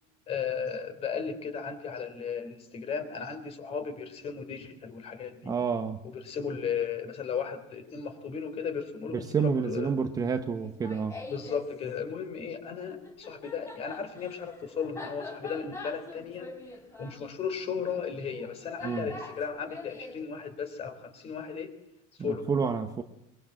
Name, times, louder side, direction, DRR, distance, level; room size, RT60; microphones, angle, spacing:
voice 1, 0.3-5.5 6.1-10.0 11.3-16.5 17.0-21.7 22.2-22.5, left 6 dB, 30° left, 8 dB, 3.7 m, -35 dB
voice 2, 5.4-6.0 9.1-11.2 18.8-19.1 22.2-23.0, right 6 dB, 20° right, 6 dB, 1.0 m, -29 dB
Laughter, 10.6-11.7 12.9-20.2, left 3 dB, 15° left, 4.0 m, -44 dB
23.0 x 23.0 x 7.4 m, 0.86 s
cardioid pair, 165°, 19 cm